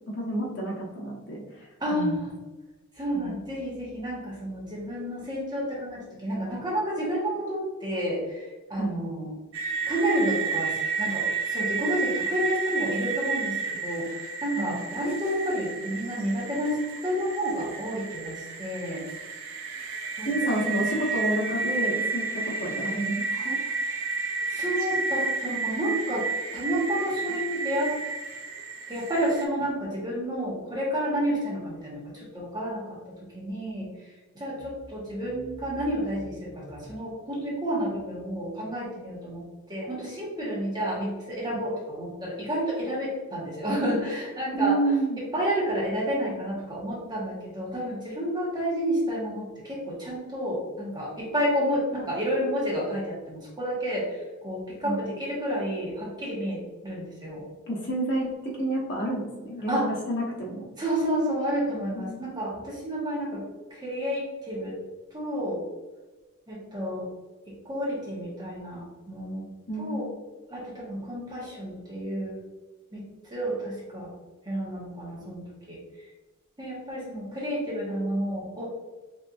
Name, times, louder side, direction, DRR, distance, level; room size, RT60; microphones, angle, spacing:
voice 1, 0.2-2.2 3.1-3.3 8.8-9.0 14.5-14.7 20.2-22.2 22.6-23.6 41.5-41.6 44.6-45.2 54.8-55.1 57.7-59.8 60.1-60.6 61.9-62.2 69.7-70.0, right 1 dB, 55° left, -4 dB, 1.1 m, -29 dB
voice 2, 1.8-2.3 2.9-9.4 9.8-19.0 20.1-20.6 23.8-24.0 24.5-26.3 26.5-27.9 28.9-44.9 45.3-57.5 59.7-59.9 60.8-63.4 63.7-64.8 65.1-65.6 66.5-67.1 67.5-69.5 69.7-70.1 70.5-72.4 72.9-74.1 74.4-75.8 76.6-78.7, equal, 20° right, -5 dB, 1.2 m, -30 dB
sound 1, 9.5-29.4, right 4 dB, 60° right, 0.5 m, -31 dB
4.1 x 3.3 x 2.5 m, 1.2 s
head